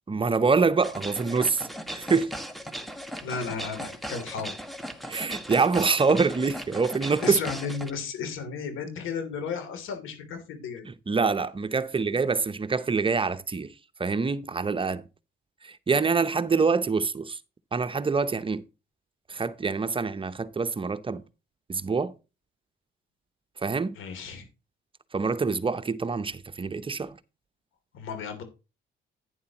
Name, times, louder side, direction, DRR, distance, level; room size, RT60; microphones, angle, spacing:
voice 1, 0.1-2.3 5.1-7.4 10.8-13.7 14.0-15.0 15.6-17.4 17.7-18.6 19.3-21.2 21.7-22.1 23.6-24.0 25.1-27.2, right 4 dB, 25° right, 0.7 m, -25 dB
sound 1, 0.8-7.9, equal, ahead, 1.7 m, -38 dB
voice 2, 3.2-4.6 7.2-10.8 23.9-24.5 27.9-28.4, left 5 dB, 85° left, 3.0 m, -34 dB
11.0 x 9.7 x 3.0 m
cardioid pair, 90°, 20 cm